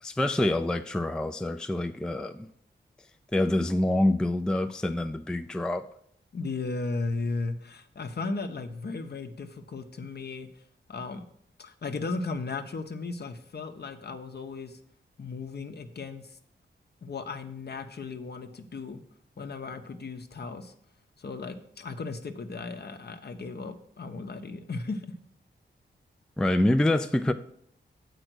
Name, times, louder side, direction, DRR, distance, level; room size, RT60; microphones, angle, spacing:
voice 1, 0.0-2.5 3.3-5.9 26.4-27.3, left 1 dB, 5° left, 0.4 m, -26 dB
voice 2, 6.3-10.5 10.9-11.3 11.6-14.8 15.2-16.4 17.0-19.0 19.4-20.7 21.2-25.1, left 3 dB, 55° left, 0.9 m, -36 dB
7.9 x 4.9 x 6.2 m
cardioid pair, 70°, 20 cm